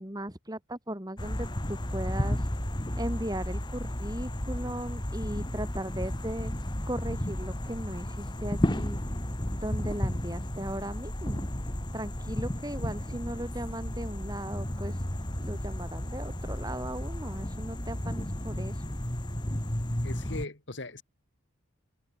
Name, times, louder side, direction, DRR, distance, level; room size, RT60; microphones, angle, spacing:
voice 1, 0.0-2.5 3.0-6.5 6.9-9.0 9.5-11.5 11.9-15.0 15.4-19.0, right 1 dB, 20° right, 3.8 m, -37 dB
sound 1, 1.2-20.5, left 1 dB, 20° left, 1.8 m, -33 dB
voice 2, 20.0-21.0, left 2 dB, 60° left, 2.3 m, -39 dB
open air
head